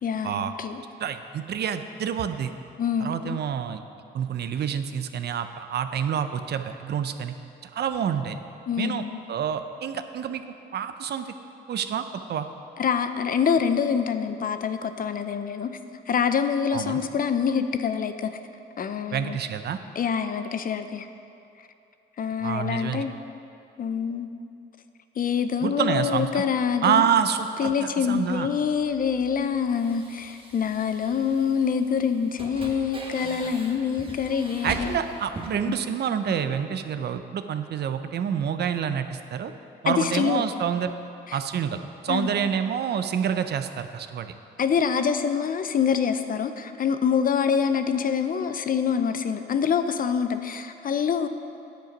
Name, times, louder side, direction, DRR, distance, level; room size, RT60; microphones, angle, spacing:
voice 1, 0.0-0.8 2.8-3.4 8.7-9.2 12.8-15.7 16.1-18.3 18.8-19.4 20.0-21.1 22.2-23.1 23.8-24.3 25.2-27.0 27.6-35.0 39.9-40.4 41.3-41.4 42.1-42.3 44.6-51.3, left 7 dB, 45° left, 9 dB, 0.6 m, -25 dB
voice 2, 1.0-2.5 3.0-3.8 4.1-7.3 7.7-8.4 8.8-10.4 10.7-11.3 11.7-12.5 16.7-17.0 19.1-19.8 22.4-23.0 25.6-26.4 26.8-28.5 34.6-39.5 39.8-40.9 41.3-44.3, right 8 dB, 55° right, 9 dB, 0.6 m, -27 dB
sound 1, 28.1-35.5, right 2 dB, 25° right, 1.4 m, -42 dB
9.2 x 7.6 x 5.3 m, 2.6 s
cardioid pair, 90°, 20 cm